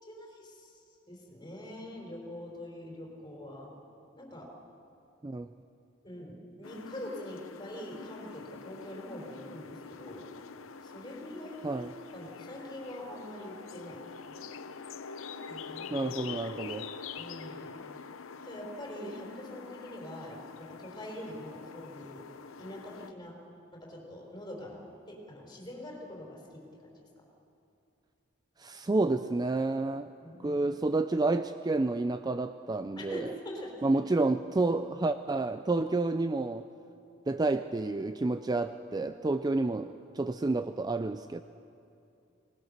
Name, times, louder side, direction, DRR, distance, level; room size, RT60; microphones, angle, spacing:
voice 1, 0.1-0.7 1.1-3.7 4.2-4.5 6.0-10.3 10.8-11.7 12.1-14.0 14.3-14.4 15.5-16.1 17.1-17.8 18.4-22.2 22.6-23.3 23.8-26.9 30.2-30.6 33.0-33.8 39.0-39.4, left 1 dB, 20° left, -1 dB, 4.6 m, -44 dB
sound 1, 6.6-23.1, left 5 dB, 75° left, 0.7 m, -45 dB
voice 2, 15.9-16.9 28.6-30.1 30.4-33.3 33.8-36.7 37.3-41.4, right 2 dB, 20° right, 10 dB, 0.4 m, -29 dB
23.0 x 19.5 x 6.7 m, 2.6 s
head